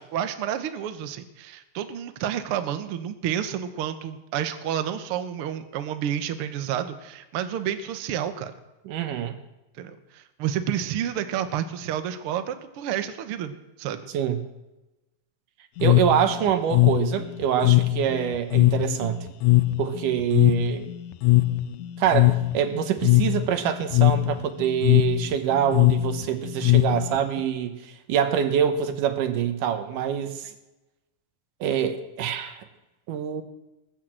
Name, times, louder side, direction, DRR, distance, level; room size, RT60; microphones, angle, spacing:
voice 1, 0.1-8.5 9.8-14.1, right 10 dB, 65° right, 9 dB, 1.4 m, -30 dB
voice 2, 8.9-9.4 14.1-14.4 15.8-19.3 19.8-20.9 22.0-30.5 31.6-32.6 33.1-33.4, right 9 dB, 85° right, 8 dB, 2.7 m, -25 dB
sound 1, 15.8-27.4, left 18 dB, 80° left, 1.8 m, -21 dB
19.5 x 6.6 x 7.7 m, 1.0 s
omnidirectional pair, 3.6 m